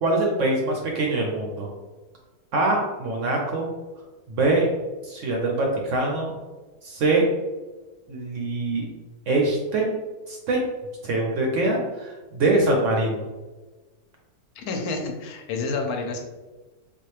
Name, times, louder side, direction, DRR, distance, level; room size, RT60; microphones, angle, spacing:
voice 1, 0.0-1.7 2.5-3.7 4.3-4.7 5.1-6.3 6.8-7.2 8.1-8.8 9.3-9.9 10.3-10.6 11.0-13.2, right 2 dB, 65° right, 0 dB, 0.8 m, -23 dB
voice 2, 14.5-16.2, left 3 dB, 75° left, 3 dB, 1.0 m, -29 dB
3.6 x 2.3 x 3.2 m, 1.2 s
omnidirectional pair, 1.7 m